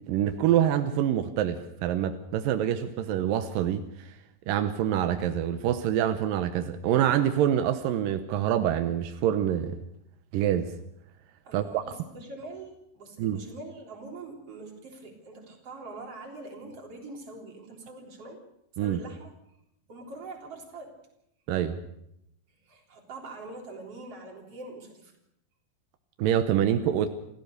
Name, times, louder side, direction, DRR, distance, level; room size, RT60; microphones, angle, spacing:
voice 1, 0.1-4.2 4.5-9.8 10.3-10.7 11.5-11.8 13.2-13.4 18.8-19.0 21.5-21.8 26.2-27.1, right 10 dB, 85° right, 9 dB, 2.7 m, -26 dB
voice 2, 11.4-18.4 18.8-19.3 19.9-21.0 22.6-25.1, right 2 dB, 45° right, 1 dB, 4.6 m, -43 dB
27.5 x 15.0 x 6.6 m, 0.78 s
omnidirectional pair, 3.9 m